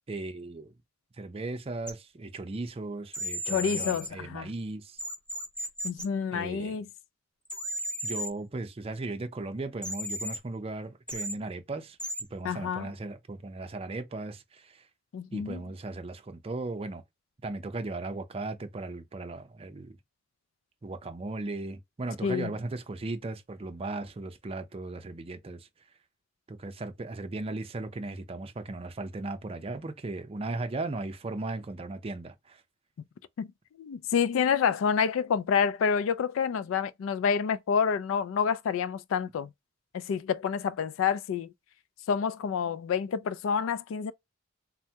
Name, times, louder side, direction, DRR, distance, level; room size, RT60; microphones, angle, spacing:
voice 1, 0.1-0.7 1.2-5.0 6.3-6.8 8.0-12.0 12.3-14.8 15.3-17.0 17.4-20.0 20.8-25.7 26.5-32.6, right 2 dB, 30° right, 0.5 m, -37 dB
sound 1, 1.9-2.0 3.1-4.1 5.0-6.0 7.4-8.3 9.8-10.4 11.1-11.3 12.0-12.2, equal, 5° left, 0.8 m, -34 dB
voice 2, 3.5-4.5 5.8-6.9 12.4-12.9 15.1-15.6 22.2-22.5 33.4-33.5 33.8-39.5 39.9-41.5 42.1-44.1, left 6 dB, 80° left, 0.3 m, -28 dB
3.3 x 2.1 x 2.7 m
head